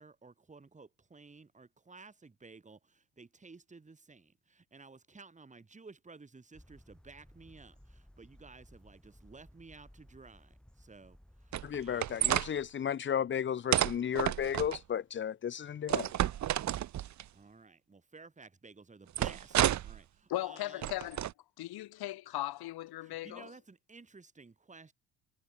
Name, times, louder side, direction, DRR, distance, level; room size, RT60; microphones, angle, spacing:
voice 1, 0.0-12.1 17.3-20.9 23.0-24.9, right 4 dB, 15° right, 4.2 m, -54 dB
sound 1, 6.5-12.7, equal, ahead, 4.6 m, -59 dB
sound 2, 11.5-12.5 13.7-14.8 15.9-17.2 19.2-20.0 20.8-21.3, right 12 dB, 40° right, 1.0 m, -30 dB
voice 2, 11.6-16.1, left 8 dB, 30° left, 0.8 m, -34 dB
voice 3, 20.3-21.3 21.6-23.5, left 15 dB, 60° left, 2.6 m, -38 dB
cardioid pair, 105°, 42 cm